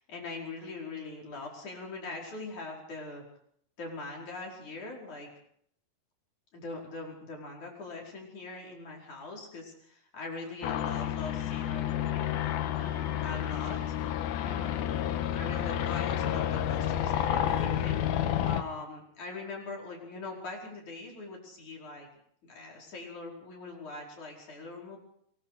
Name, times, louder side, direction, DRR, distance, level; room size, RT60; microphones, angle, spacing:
voice 1, 0.0-3.2 3.8-5.3 6.5-13.8 14.4-15.0 15.3-18.1 18.4-22.1 22.4-25.0, left 3 dB, 45° left, -1 dB, 6.4 m, -42 dB
sound 1, 10.6-18.6, left 10 dB, 75° left, 2.9 m, -30 dB
25.0 x 23.0 x 5.0 m, 0.67 s
omnidirectional pair, 4.7 m